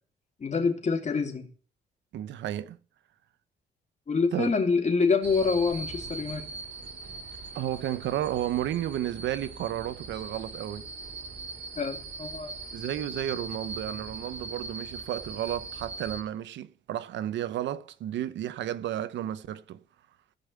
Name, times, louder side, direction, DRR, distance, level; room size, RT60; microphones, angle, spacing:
voice 1, 0.4-1.4 4.1-6.5 11.8-12.5, left 4 dB, 40° left, 2.5 m, -26 dB
voice 2, 2.1-2.8 4.3-4.5 7.5-10.9 12.7-19.8, right 11 dB, 90° right, 0.8 m, -32 dB
sound 1, 5.2-16.2, right 3 dB, 75° right, 2.6 m, -41 dB
15.5 x 5.4 x 8.4 m
cardioid pair, 105°, 18 cm